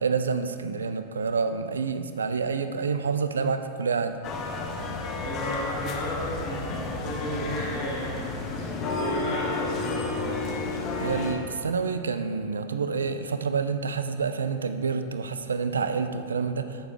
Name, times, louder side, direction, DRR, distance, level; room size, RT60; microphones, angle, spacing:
voice 1, 0.0-4.2 11.0-16.7, right 5 dB, 70° right, 10 dB, 0.5 m, -28 dB
sound 1, 4.2-11.3, left 3 dB, 35° left, 1.1 m, -31 dB
voice 2, 5.2-10.4, equal, 50° left, -5 dB, 2.0 m, -33 dB
13.0 x 6.8 x 3.2 m, 2.4 s
figure-of-eight pair, 90°, 0 cm